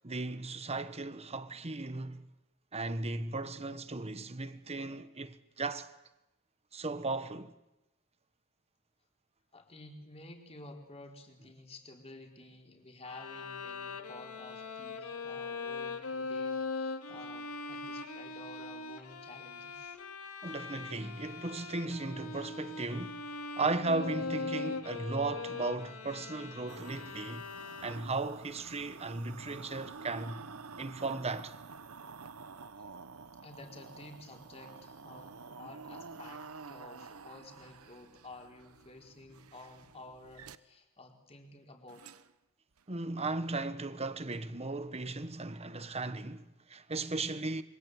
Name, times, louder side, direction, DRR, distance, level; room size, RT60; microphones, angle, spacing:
voice 1, 0.0-2.3 2.7-5.9 6.7-7.5 20.4-27.5 27.8-30.4 30.8-31.5 42.9-47.6, right 3 dB, 30° right, 1.3 m, -36 dB
voice 2, 9.5-20.0 33.4-42.2, left 2 dB, 30° left, 4.1 m, -52 dB
Bowed string instrument, 13.0-28.3, left 4 dB, 80° left, 2.3 m, -41 dB
sound 1, 26.7-40.6 41.9-42.3 42.8-42.9, right 4 dB, 75° right, 1.0 m, -49 dB
27.0 x 24.0 x 8.1 m
head